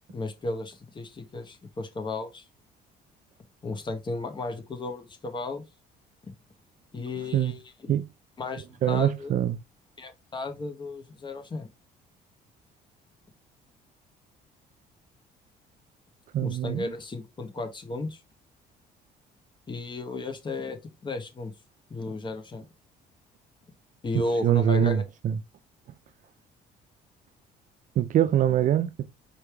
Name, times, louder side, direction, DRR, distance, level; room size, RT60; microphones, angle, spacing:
voice 1, 0.1-2.4 3.6-5.6 6.2-6.3 6.9-7.9 8.4-9.3 10.0-11.7 16.4-18.2 19.7-21.5 21.9-22.7 24.0-25.0, left 2 dB, 25° left, 1.1 m, -34 dB
voice 2, 8.8-9.6 16.3-16.9 24.1-25.4 28.0-29.1, right 10 dB, 50° right, 0.5 m, -24 dB
4.4 x 3.3 x 3.4 m
cardioid pair, 110°, 17 cm